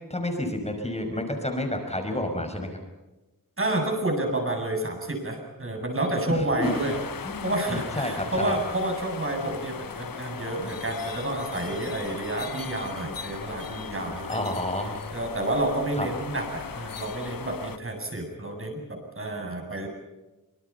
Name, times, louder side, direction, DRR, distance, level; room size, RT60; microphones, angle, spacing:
voice 1, 0.1-2.8 6.3-6.7 7.2-8.5 14.0-15.0 16.0-16.1, left 1 dB, 20° left, 4 dB, 5.5 m, -30 dB
voice 2, 3.6-7.0 7.4-14.4 15.1-19.9, right 1 dB, 40° right, 3 dB, 7.9 m, -29 dB
sound 1, 6.6-17.8, left 6 dB, 80° left, 1.2 m, -38 dB
26.5 x 25.0 x 5.8 m, 1.1 s
wide cardioid pair, 95°, 34 cm